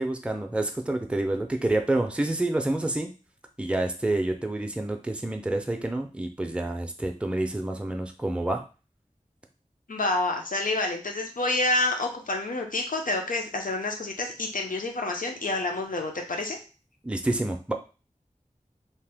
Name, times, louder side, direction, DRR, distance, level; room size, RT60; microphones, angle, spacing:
voice 1, 0.0-3.1 3.6-8.6 17.0-17.7, right 2 dB, 10° right, 3 dB, 0.4 m, -28 dB
voice 2, 9.9-16.6, left 2 dB, 85° left, 2 dB, 0.6 m, -28 dB
2.8 x 2.1 x 3.4 m, 0.34 s
wide cardioid pair, 55°, 14 cm